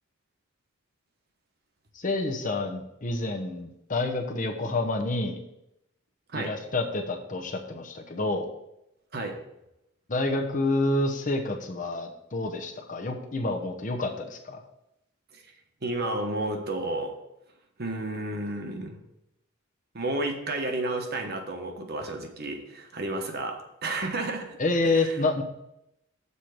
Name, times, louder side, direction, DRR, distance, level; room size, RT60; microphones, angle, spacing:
voice 1, 1.9-5.4 6.3-8.5 10.1-14.6 24.6-25.4, left 2 dB, 40° left, 3 dB, 0.9 m, -28 dB
voice 2, 15.8-17.1 17.8-19.0 19.9-24.6 24.8-25.2, right 2 dB, 50° right, 4 dB, 1.1 m, -32 dB
6.9 x 4.5 x 6.5 m, 0.85 s
head